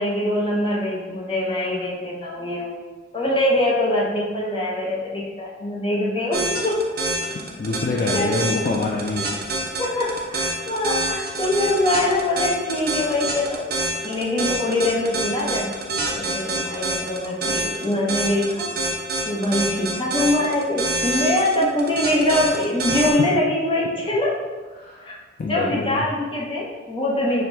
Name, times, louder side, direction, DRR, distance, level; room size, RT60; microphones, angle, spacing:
voice 1, 0.0-2.7 3.1-6.9 8.1-8.4 9.8-13.6 14.0-15.7 16.1-18.7 19.2-24.4 25.1-25.2 25.4-27.4, left 1 dB, 25° left, -5 dB, 0.7 m, -23 dB
sound 1, 6.3-23.1, right 2 dB, 50° right, 0.6 m, -26 dB
voice 2, 7.3-9.3 22.9-23.0 24.7-25.0 25.4-26.1, left 3 dB, 45° left, -2 dB, 0.3 m, -26 dB
6.1 x 2.1 x 2.7 m, 1.3 s
head